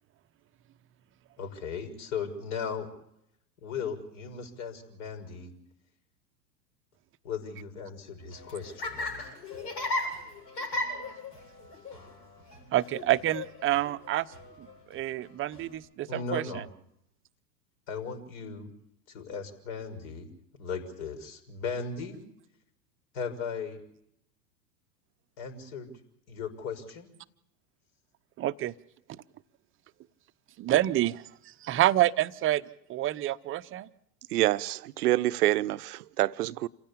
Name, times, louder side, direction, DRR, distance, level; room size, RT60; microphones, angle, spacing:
voice 1, 1.4-2.9 3.6-5.5 7.2-9.4 16.1-16.6 17.9-18.7 19.1-20.3 20.6-22.2 23.1-23.8 25.4-25.9 26.3-27.1, left 5 dB, 60° left, 6.3 m, -37 dB
Laughter, 8.2-15.7, left 2 dB, 85° left, 7.8 m, -37 dB
voice 2, 12.7-16.6 28.4-28.7 29.1-29.2 30.6-33.9, right 14 dB, 25° right, 0.8 m, -28 dB
voice 3, 34.3-36.7, right 15 dB, 65° right, 0.9 m, -27 dB
28.0 x 16.0 x 8.6 m
hypercardioid pair, 100°, 50 cm